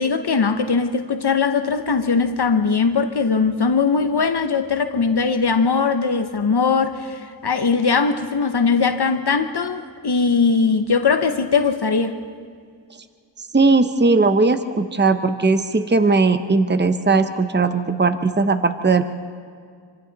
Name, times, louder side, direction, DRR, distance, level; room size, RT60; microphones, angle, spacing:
voice 1, 0.0-12.2, left 5 dB, 60° left, 0.9 m, -20 dB
voice 2, 13.5-19.0, right 3 dB, 25° right, 0.9 m, -18 dB
26.5 x 25.5 x 4.0 m
wide cardioid pair, 75°, 44 cm